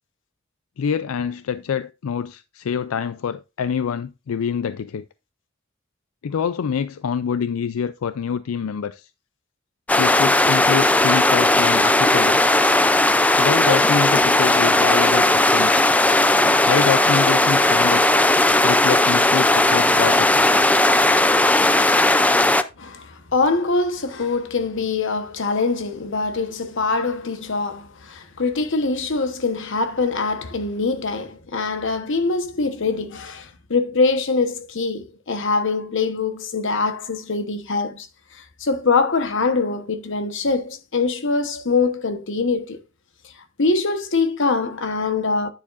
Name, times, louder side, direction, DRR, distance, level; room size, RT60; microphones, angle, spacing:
voice 1, 0.8-5.1 6.2-9.1 10.0-12.4 13.4-15.8 16.7-18.2 18.6-20.6, left 7 dB, 90° left, 0.4 m, -26 dB
sound 1, 9.9-22.6, left 2 dB, 5° left, 0.4 m, -17 dB
voice 2, 22.8-38.1 38.3-42.8 43.6-45.5, left 4 dB, 65° left, 1.1 m, -23 dB
9.9 x 6.9 x 2.5 m
head